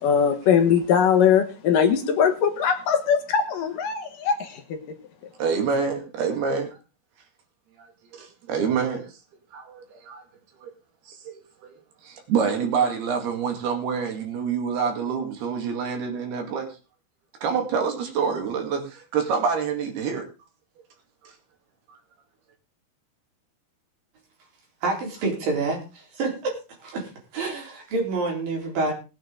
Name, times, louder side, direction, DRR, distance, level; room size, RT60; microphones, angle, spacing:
voice 1, 0.0-4.8, left 7 dB, 65° left, 6 dB, 2.7 m, -21 dB
voice 2, 5.4-6.8 8.1-9.1 9.5-10.2 10.6-10.7 11.1-11.7 12.0-16.8 17.4-20.3 21.2-21.3 21.9-22.0, right 6 dB, 80° right, 4 dB, 4.3 m, -27 dB
voice 3, 24.8-26.5 26.8-28.9, right 3 dB, 60° right, 0 dB, 5.5 m, -28 dB
19.5 x 8.9 x 3.7 m, 0.30 s
omnidirectional pair, 4.5 m